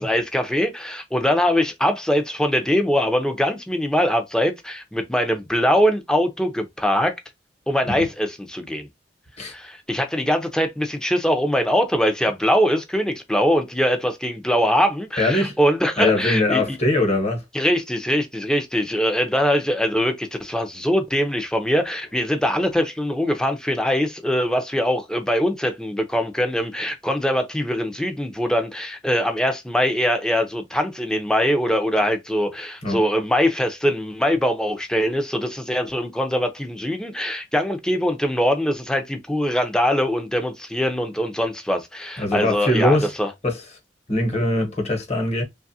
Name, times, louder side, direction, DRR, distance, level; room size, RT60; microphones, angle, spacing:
voice 1, 0.0-7.1 7.7-8.9 9.5-16.8 17.5-43.3, equal, 5° left, 0.5 m, -22 dB
voice 2, 15.2-15.6 16.0-17.4 32.8-33.0 42.2-43.1 43.4-43.6 44.1-45.4, left 1 dB, 40° left, 1.1 m, -21 dB
3.0 x 2.4 x 2.6 m
head